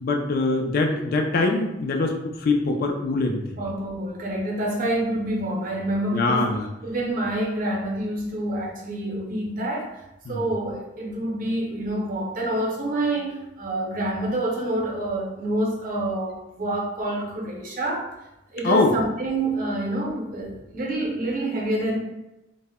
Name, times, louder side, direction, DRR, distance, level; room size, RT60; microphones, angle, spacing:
voice 1, 0.0-3.4 6.1-6.7 10.3-10.4 18.6-18.9, left 3 dB, 55° left, 3 dB, 0.4 m, -23 dB
voice 2, 3.6-6.5 6.8-10.0 10.3-18.1 18.5-22.0, right 1 dB, 50° right, -2 dB, 0.6 m, -27 dB
2.1 x 2.0 x 3.5 m, 0.94 s
head